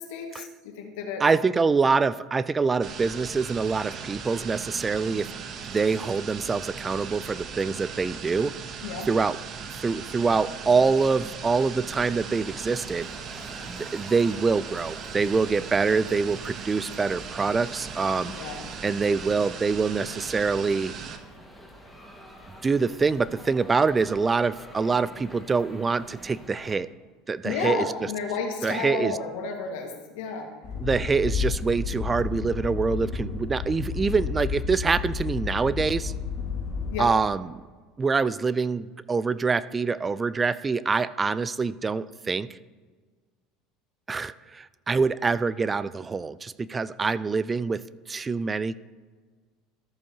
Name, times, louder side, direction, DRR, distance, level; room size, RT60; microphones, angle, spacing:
voice 1, 0.0-1.2 8.8-9.1 18.3-18.7 27.4-30.5 36.9-37.1, left 5 dB, 75° left, 2 dB, 1.7 m, -32 dB
voice 2, 1.2-5.3 5.7-8.5 9.1-9.4 9.8-13.1 13.7-18.3 18.8-20.9 22.6-26.9 27.3-28.1 28.6-29.2 30.8-36.1 37.0-37.6 38.0-42.6 44.1-48.8, right 4 dB, 25° right, 17 dB, 0.3 m, -25 dB
sound 1, 2.8-21.2, right 6 dB, 45° right, 0.9 m, -38 dB
sound 2, 11.9-26.8, equal, 5° right, 1.7 m, -47 dB
sound 3, 30.6-37.0, left 6 dB, 55° left, 1.7 m, -31 dB
14.0 x 7.0 x 2.9 m, 1.4 s
hypercardioid pair, 90°, 0 cm